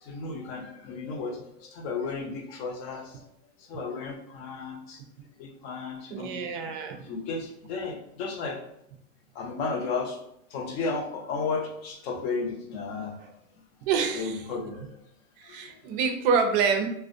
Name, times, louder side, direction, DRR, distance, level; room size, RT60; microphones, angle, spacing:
voice 1, 0.0-3.2 3.7-5.0 5.4-6.3 7.1-8.6 9.3-10.2 10.5-13.1 14.1-15.0 15.4-15.7, left 4 dB, 50° left, 2 dB, 0.7 m, -33 dB
voice 2, 6.1-7.1 13.8-14.4 15.4-16.9, right 5 dB, 45° right, 5 dB, 0.4 m, -27 dB
2.4 x 2.1 x 2.5 m, 0.78 s
hypercardioid pair, 130°, 40 cm